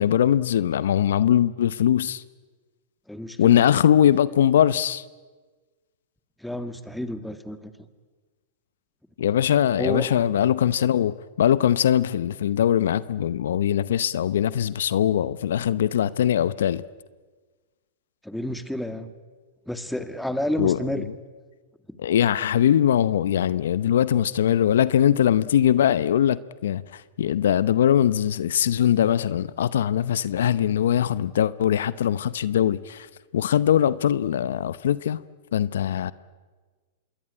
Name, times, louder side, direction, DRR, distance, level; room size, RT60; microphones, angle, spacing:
voice 1, 0.0-2.2 3.4-5.0 9.2-16.8 20.6-21.1 22.0-33.1 33.3-35.2 35.5-36.1, left 10 dB, 75° left, 0.7 m, -21 dB
voice 2, 3.1-3.8 6.4-7.7 9.8-10.2 18.2-19.1 19.7-21.0, left 1 dB, ahead, 1.9 m, -30 dB
26.0 x 21.5 x 9.9 m
hypercardioid pair, 125°, 0 cm